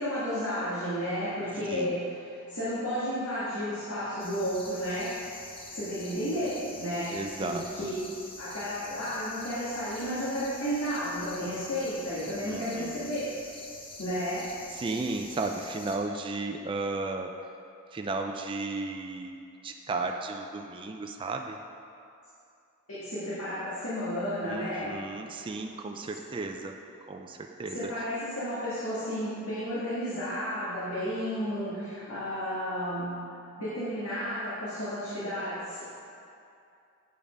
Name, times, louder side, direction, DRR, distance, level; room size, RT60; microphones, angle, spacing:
voice 1, 0.0-5.1 5.5-7.9 8.4-13.3 14.0-14.5 22.9-24.9 27.7-33.2 33.6-35.9, equal, 80° left, -11 dB, 2.0 m, -32 dB
sound 1, 4.2-16.0, left 2 dB, 25° left, 1.0 m, -46 dB
voice 2, 7.1-7.9 12.4-13.1 14.7-17.3 17.9-21.6 24.4-28.0, right 3 dB, 25° right, 3 dB, 0.3 m, -34 dB
8.7 x 5.1 x 5.3 m, 2.6 s
head